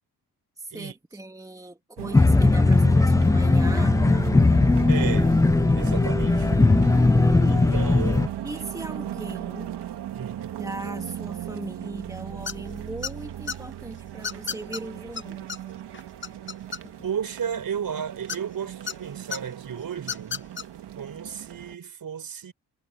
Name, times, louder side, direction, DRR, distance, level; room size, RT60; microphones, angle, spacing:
voice 1, 0.6-4.3 8.4-9.7 10.6-15.5, right 2 dB, 10° right, 2.4 m, -38 dB
sound 1, 2.0-21.8, right 11 dB, 90° right, 1.7 m, -36 dB
sound 2, 2.1-8.3, left 3 dB, 10° left, 0.3 m, -19 dB
voice 2, 4.9-5.4 5.8-6.5 7.4-8.3 10.1-10.6 17.0-20.4 20.9-22.5, right 7 dB, 60° right, 4.9 m, -33 dB
sound 3, 12.5-12.7 13.0-13.6 14.2-14.8 15.2-15.3 15.5-15.6 15.9-17.1 18.3-18.9 19.3-19.4 20.0-20.6, left 6 dB, 30° left, 0.7 m, -32 dB
cardioid pair, 110°, 39 cm